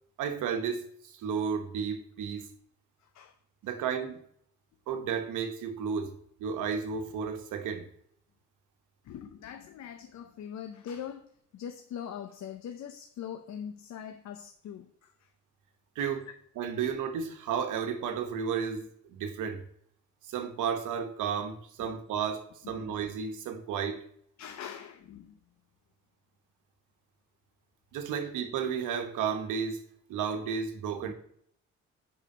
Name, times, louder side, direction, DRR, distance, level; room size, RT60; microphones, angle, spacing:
voice 1, 0.2-2.5 3.6-4.2 4.9-6.1 6.4-7.9 15.9-16.3 16.6-19.6 20.3-24.0 27.9-29.8 30.1-31.1, right 7 dB, 85° right, 1.2 m, -33 dB
voice 2, 9.1-11.3 11.5-14.9 16.0-16.1 21.8-22.0 22.8-22.9 24.4-25.3 31.0-31.1, left 8 dB, 65° left, 0.8 m, -42 dB
7.3 x 4.9 x 5.4 m
cardioid pair, 90°, 30 cm